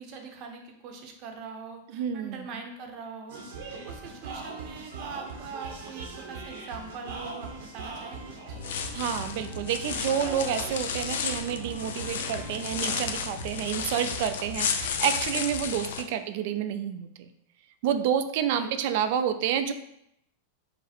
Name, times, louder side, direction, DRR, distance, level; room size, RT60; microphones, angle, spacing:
voice 1, 0.0-3.4 3.7-8.6 14.0-14.3 16.0-16.1 18.5-19.0, right 5 dB, 45° right, 4 dB, 0.7 m, -42 dB
voice 2, 1.9-2.5 8.9-17.3 17.8-19.7, right 9 dB, 60° right, 10 dB, 0.3 m, -29 dB
sound 1, 3.3-15.8, right 3 dB, 75° right, 0.9 m, -41 dB
sound 2, 8.5-16.0, left 7 dB, 80° left, 0.4 m, -33 dB
4.9 x 2.1 x 4.2 m, 0.78 s
supercardioid pair, 135°, 0 cm